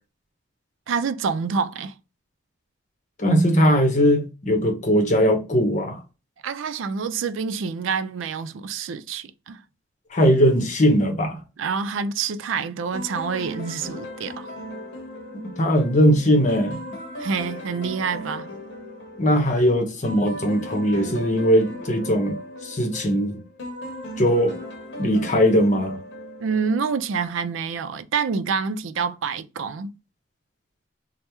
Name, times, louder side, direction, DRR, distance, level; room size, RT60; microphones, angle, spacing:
voice 1, 0.9-1.9 6.4-9.6 11.6-14.5 17.2-18.5 26.4-29.9, right 5 dB, 85° right, 0.4 m, -27 dB
voice 2, 3.2-6.0 10.1-11.4 15.4-16.8 19.2-23.4 24.2-24.6 25.0-26.0, equal, 40° left, 0.7 m, -20 dB
sound 1, 12.9-27.1, left 1 dB, 70° left, 0.8 m, -37 dB
3.3 x 2.0 x 2.9 m
head